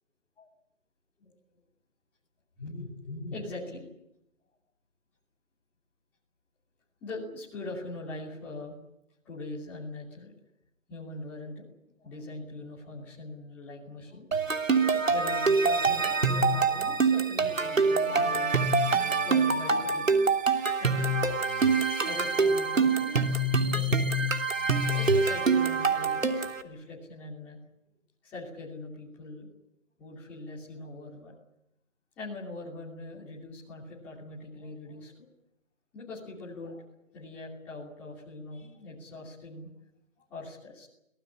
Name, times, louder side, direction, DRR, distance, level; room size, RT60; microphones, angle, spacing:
voice 1, 2.6-3.9 7.0-8.8 9.2-10.3 10.9-11.7 12.0-18.6 19.2-20.1 20.4-21.2 22.0-24.3 24.9-27.6 28.2-29.5 30.0-31.4 32.2-35.3 35.9-36.8 37.1-39.7 40.3-40.9, left 2 dB, 5° left, -6 dB, 2.9 m, -42 dB
sound 1, 14.3-26.6, right 4 dB, 80° right, 3.3 m, -25 dB
25.0 x 18.5 x 9.8 m, 0.81 s
hypercardioid pair, 175°, 39 cm